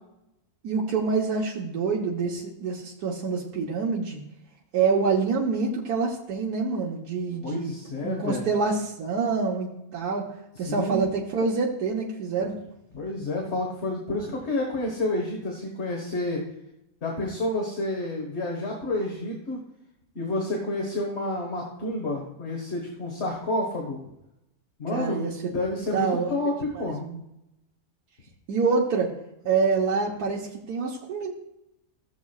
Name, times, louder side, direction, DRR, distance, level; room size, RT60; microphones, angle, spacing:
voice 1, 0.6-4.2 4.7-7.8 8.0-10.3 10.6-12.5 24.9-25.3 25.9-26.3 26.7-27.2 28.5-29.1 29.5-31.3, right 4 dB, 85° right, -3 dB, 1.6 m, -26 dB
voice 2, 7.4-8.5 10.6-11.0 12.9-16.5 17.0-19.6 20.2-24.0 24.8-25.3 25.5-27.1, left 2 dB, 45° left, 0 dB, 1.6 m, -29 dB
15.0 x 7.1 x 2.4 m, 0.85 s
omnidirectional pair, 1.6 m